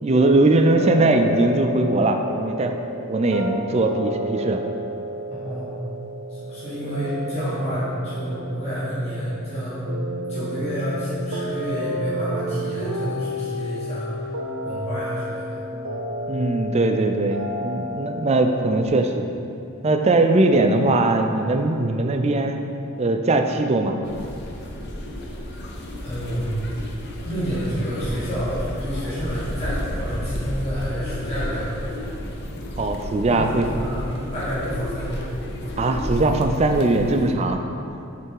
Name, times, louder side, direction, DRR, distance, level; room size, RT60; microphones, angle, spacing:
voice 1, 0.0-2.7 3.1-4.6 16.3-19.3 19.8-22.6 23.0-24.0 32.8-33.7 35.8-37.6, right 2 dB, 30° right, 5 dB, 0.4 m, -20 dB
sound 1, 0.7-18.9, equal, 80° right, 0.8 m, -31 dB
voice 2, 5.3-5.8 6.3-9.8 10.3-14.1 14.6-15.6 26.0-26.6 27.2-31.9 33.3-34.0 34.3-35.3, equal, 30° left, -11 dB, 1.5 m, -29 dB
sound 2, 24.0-37.3, left 1 dB, 55° left, 0.7 m, -32 dB
7.6 x 3.4 x 4.7 m, 2.7 s
head